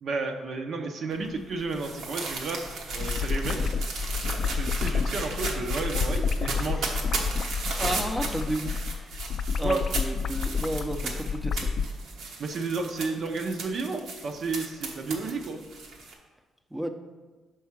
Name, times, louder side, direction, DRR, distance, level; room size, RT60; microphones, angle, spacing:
voice 1, 0.0-2.6 2.9-3.7 4.4-6.8 9.6-9.8 12.4-15.6, right 3 dB, 60° right, 3 dB, 0.7 m, -32 dB
sound 1, 1.1-16.1, right 3 dB, 80° right, 1.1 m, -36 dB
sound 2, 2.7-11.9, left 5 dB, 60° left, 0.3 m, -29 dB
voice 2, 7.8-9.2 9.6-11.7 16.7-16.9, right 1 dB, 10° right, 5 dB, 0.6 m, -32 dB
5.5 x 4.7 x 5.9 m, 1.3 s
cardioid pair, 90°, 0 cm